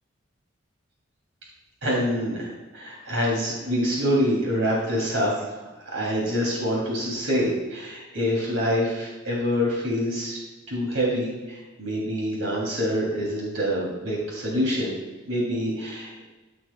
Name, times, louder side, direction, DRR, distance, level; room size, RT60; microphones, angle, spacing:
voice 1, 1.8-10.4 10.7-15.0 15.3-16.2, equal, 85° right, -4 dB, 2.8 m, -26 dB
14.0 x 6.5 x 2.3 m, 1.2 s
head